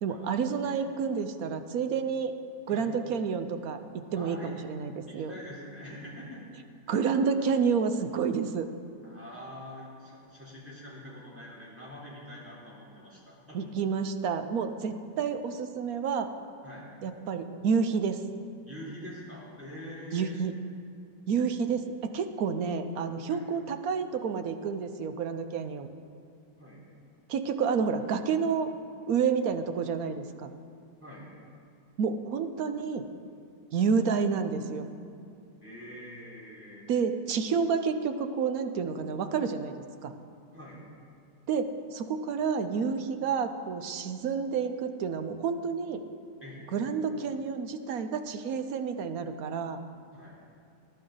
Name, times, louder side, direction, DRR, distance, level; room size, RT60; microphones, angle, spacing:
voice 1, 0.0-2.3 2.7-5.3 6.9-8.7 13.5-16.3 17.0-18.2 20.1-20.5 21.3-25.9 27.3-28.7 29.1-30.5 32.0-33.1 33.7-34.9 36.9-39.7 40.0-40.1 41.5-46.0 46.7-49.8, right 6 dB, 60° right, 8 dB, 1.1 m, -29 dB
voice 2, 4.2-4.5 5.1-6.4 6.8-7.0 9.0-13.6 16.6-16.9 18.6-20.4 23.2-23.4 26.6-26.8 31.0-31.3 35.6-36.9 40.5-40.8 46.4-46.7 50.1-50.4, equal, 5° right, -7 dB, 3.8 m, -45 dB
20.0 x 11.5 x 3.9 m, 2.4 s
omnidirectional pair, 1.9 m